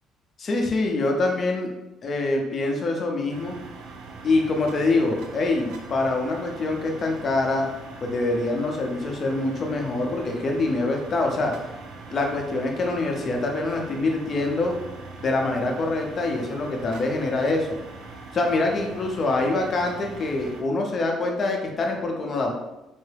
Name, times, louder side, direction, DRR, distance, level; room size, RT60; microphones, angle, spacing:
voice 1, 0.4-1.7 2.0-3.5 4.2-7.7 8.0-11.5 12.1-14.8 15.2-17.7 18.3-22.5, left 2 dB, 35° left, 1 dB, 0.6 m, -25 dB
sound 1, 3.3-20.6, right 4 dB, 90° right, 0.5 m, -42 dB
4.5 x 2.0 x 3.3 m, 0.98 s
cardioid pair, 135°, 0 cm